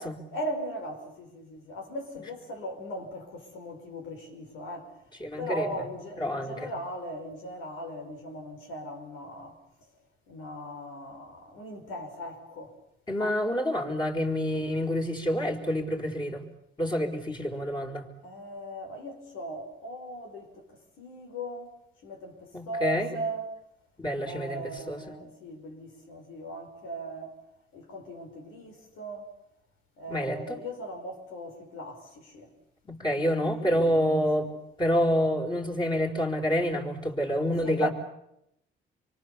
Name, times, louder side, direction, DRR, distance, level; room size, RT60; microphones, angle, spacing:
voice 1, 0.3-5.1 5.4-9.6 10.3-12.8 13.2-13.4 18.2-23.5 24.2-27.4 27.7-29.3 30.0-32.5 33.1-34.6 37.6-37.9, equal, 90° left, 5.5 m, -39 dB
voice 2, 5.2-5.7 6.2-6.7 13.1-16.4 16.8-18.1 22.5-23.1 24.0-25.1 30.1-30.6 32.9-34.5 34.8-37.9, equal, 20° left, 4.9 m, -28 dB
26.5 x 24.5 x 7.1 m
cardioid pair, 90°, 20 cm